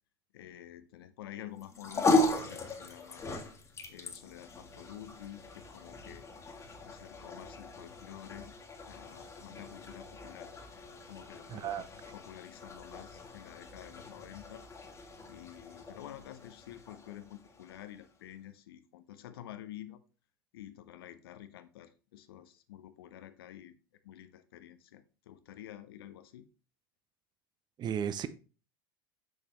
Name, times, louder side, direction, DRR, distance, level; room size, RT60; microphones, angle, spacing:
voice 1, 0.3-3.3 3.9-6.3 6.8-8.5 8.9-10.5 11.0-11.7 12.1-14.7 15.3-20.0 20.5-23.7 24.0-26.5, left 12 dB, 75° left, 0.8 m, -49 dB
sound 1, 1.6-18.1, left 2 dB, 25° left, 1.6 m, -37 dB
voice 2, 11.5-11.8 27.8-28.3, right 9 dB, 35° right, 0.7 m, -34 dB
6.6 x 6.5 x 3.0 m
hypercardioid pair, 85°, 13 cm